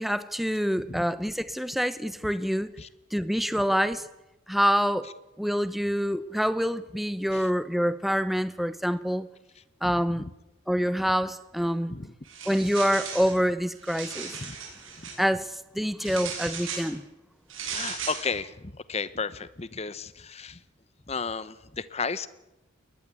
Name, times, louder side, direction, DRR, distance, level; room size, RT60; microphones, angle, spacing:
voice 1, 0.0-2.7 3.1-4.1 4.5-5.1 5.4-9.3 9.8-10.3 10.7-11.9 12.5-14.4 15.2-17.1, equal, ahead, 0.8 m, -26 dB
sound 1, 12.3-13.4 13.7-15.2 16.0-16.9 17.5-18.2, right 6 dB, 80° right, 7.9 m, -36 dB
voice 2, 17.6-20.6 21.1-22.3, left 5 dB, 30° left, 0.9 m, -33 dB
21.0 x 20.0 x 8.4 m
head